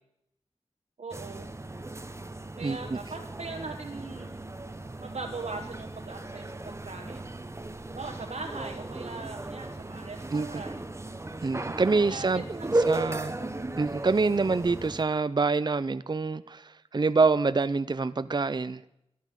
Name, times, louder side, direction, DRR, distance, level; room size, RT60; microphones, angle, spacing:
voice 1, 1.0-1.5 2.6-4.4 5.0-7.3 7.9-10.8 12.0-13.2, right 3 dB, 80° right, 1 dB, 1.3 m, -40 dB
sound 1, 1.1-15.0, right 2 dB, 25° right, 0.9 m, -36 dB
voice 2, 2.6-3.0 10.3-10.6 11.4-13.4 13.8-18.8, right 4 dB, 40° right, 14 dB, 0.5 m, -26 dB
12.0 x 12.0 x 7.5 m, 0.83 s
wide cardioid pair, 60°, 11 cm